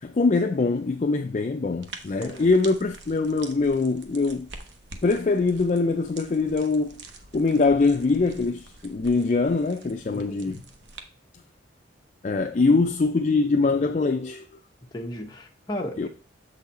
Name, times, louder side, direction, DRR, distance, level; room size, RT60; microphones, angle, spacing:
voice 1, 0.0-4.5 5.0-7.0 7.3-10.6 12.2-14.5 16.0-16.1, left 3 dB, 40° left, 0.4 m, -23 dB
sound 1, 1.8-11.0, right 3 dB, 65° right, 0.8 m, -46 dB
voice 2, 2.2-2.5 10.1-10.6 14.9-16.1, equal, 20° left, 0.9 m, -35 dB
6.9 x 4.0 x 4.1 m
head